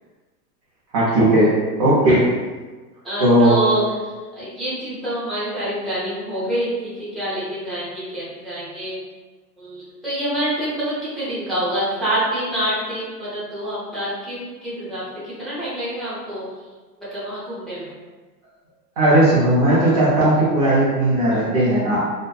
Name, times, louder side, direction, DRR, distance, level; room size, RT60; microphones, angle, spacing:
voice 1, 0.9-2.3 3.2-3.6 19.0-22.0, right 1 dB, 25° right, -10 dB, 0.3 m, -16 dB
voice 2, 3.0-9.0 9.6-16.4 17.1-17.9, right 1 dB, ahead, -12 dB, 0.7 m, -26 dB
2.6 x 2.1 x 2.3 m, 1.3 s
hypercardioid pair, 120°, 49 cm